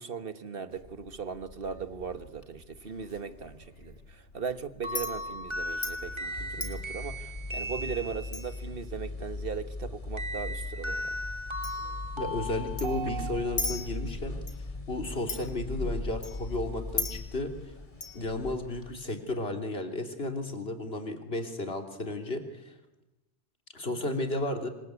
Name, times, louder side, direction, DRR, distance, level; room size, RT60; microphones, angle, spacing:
voice 1, 0.0-11.2 13.2-13.3, right 6 dB, 55° right, 10 dB, 1.7 m, -38 dB
Chink clink, 0.7-18.9, left 3 dB, 80° left, 2.8 m, -42 dB
sound 1, 4.8-8.6 10.2-13.9, equal, 25° right, 1.9 m, -37 dB
sound 2, 6.4-19.0, left 2 dB, 30° left, 2.3 m, -39 dB
voice 2, 12.2-14.4 14.9-17.5 18.1-22.7 23.7-24.7, left 2 dB, 60° left, 4 dB, 3.6 m, -33 dB
27.0 x 24.5 x 8.5 m, 0.96 s
omnidirectional pair, 1.2 m